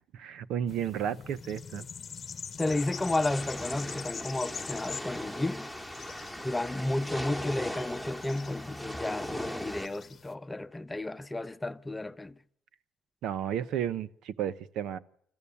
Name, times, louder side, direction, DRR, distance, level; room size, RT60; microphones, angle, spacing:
voice 1, 0.1-1.9 13.2-15.0, right 9 dB, 85° right, 0.9 m, -33 dB
sound 1, 0.7-10.3, left 6 dB, 45° left, 1.0 m, -44 dB
voice 2, 2.6-5.7 6.4-12.4, left 2 dB, 15° left, 0.9 m, -32 dB
sound 2, 2.6-9.9, equal, 10° right, 2.3 m, -39 dB
27.0 x 14.5 x 8.5 m
cardioid pair, 90°, 0 cm